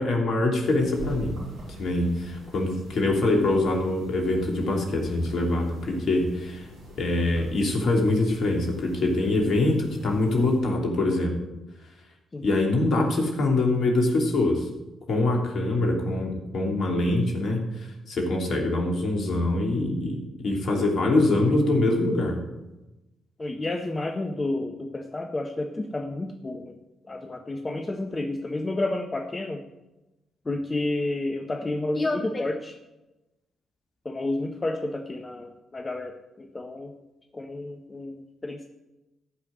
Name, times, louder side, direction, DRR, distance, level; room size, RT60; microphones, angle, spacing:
voice 1, 0.0-1.4 1.8-6.6 7.0-11.3 12.4-14.6 15.1-22.4, left 2 dB, 60° left, 2 dB, 3.1 m, -24 dB
sound 1, 0.6-10.6, right 1 dB, 70° right, 5.6 m, -44 dB
voice 2, 23.4-26.8 27.1-29.6 30.4-32.7 34.0-36.9 37.3-38.7, left 2 dB, 30° left, 3 dB, 1.4 m, -30 dB
14.5 x 5.9 x 9.5 m, 1.0 s
hypercardioid pair, 40°, 0 cm